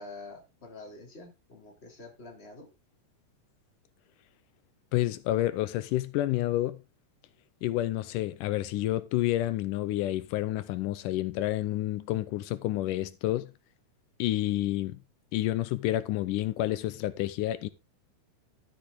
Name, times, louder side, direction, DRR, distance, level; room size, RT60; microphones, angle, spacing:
voice 1, 0.0-2.7, left 2 dB, 20° left, 2.6 m, -47 dB
voice 2, 4.9-6.8 7.6-13.5 14.2-15.0 15.3-17.7, left 15 dB, 90° left, 2.3 m, -29 dB
12.5 x 6.8 x 3.7 m
omnidirectional pair, 3.7 m